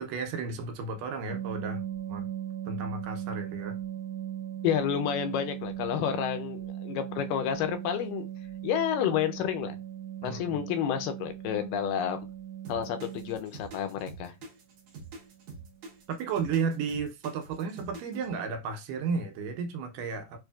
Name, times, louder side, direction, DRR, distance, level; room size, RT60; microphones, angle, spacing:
voice 1, 0.0-1.8 2.1-2.3 2.7-3.8 10.2-10.6 16.1-20.4, right 5 dB, 85° right, 2.3 m, -33 dB
sound 1, 1.3-13.3 15.2-15.4 15.7-15.8 16.2-16.4 16.7-17.0, right 11 dB, 45° right, 0.9 m, -38 dB
voice 2, 4.6-8.3 8.6-9.8 10.2-12.2 12.7-14.3, left 9 dB, 85° left, 2.2 m, -30 dB
sound 2, 12.6-18.3, right 4 dB, 65° right, 1.9 m, -45 dB
6.2 x 2.5 x 2.3 m
omnidirectional pair, 3.8 m